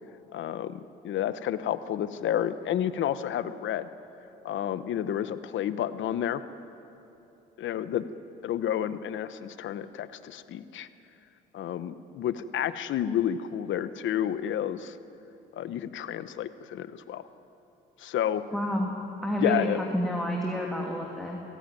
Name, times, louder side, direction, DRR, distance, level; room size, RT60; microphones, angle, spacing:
voice 1, 0.3-3.9 4.4-6.4 7.6-8.1 8.4-10.9 11.5-15.0 15.5-17.2 18.0-18.4 19.4-19.8, left 10 dB, 75° left, 13 dB, 1.0 m, -30 dB
voice 2, 18.5-19.0 19.2-21.4, equal, ahead, -1 dB, 2.6 m, -29 dB
24.0 x 16.5 x 9.2 m, 2.9 s
cardioid pair, 90°, 20 cm